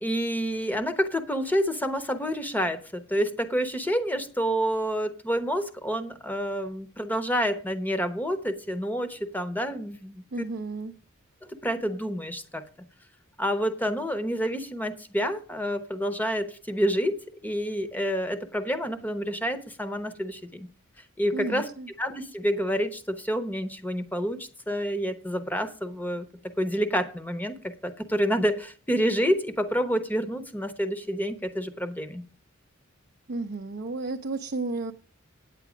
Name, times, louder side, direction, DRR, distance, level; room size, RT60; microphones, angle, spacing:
voice 1, 0.0-10.2 11.6-12.6 13.4-17.2 17.4-20.7 21.2-21.7 22.0-26.3 26.6-27.6 27.8-32.2, equal, 10° left, 0.8 m, -28 dB
voice 2, 10.3-10.9 21.3-21.9 33.3-34.9, right 3 dB, 50° right, 0.5 m, -32 dB
9.2 x 8.3 x 5.0 m
head